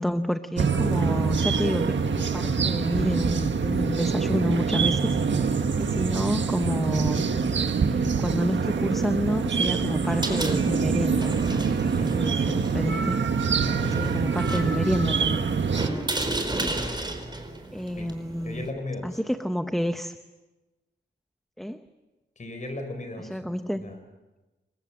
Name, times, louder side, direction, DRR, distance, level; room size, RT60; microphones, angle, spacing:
voice 1, 0.0-5.5 5.7-7.2 7.9-11.7 11.9-13.2 13.8-15.4 15.8-16.9 17.7-18.7 19.0-20.2 21.6-21.9 23.2-23.9, equal, ahead, 8 dB, 0.9 m, -29 dB
sound 1, 0.6-15.9, right 5 dB, 90° right, 1.5 m, -25 dB
sound 2, 10.0-18.7, right 2 dB, 25° right, 4.1 m, -34 dB
voice 2, 13.6-14.1 18.0-18.1 18.4-19.2 22.4-23.5 23.8-24.0, left 2 dB, 45° left, 6 dB, 4.8 m, -36 dB
28.5 x 22.5 x 7.6 m, 1.1 s
wide cardioid pair, 150°, 18 cm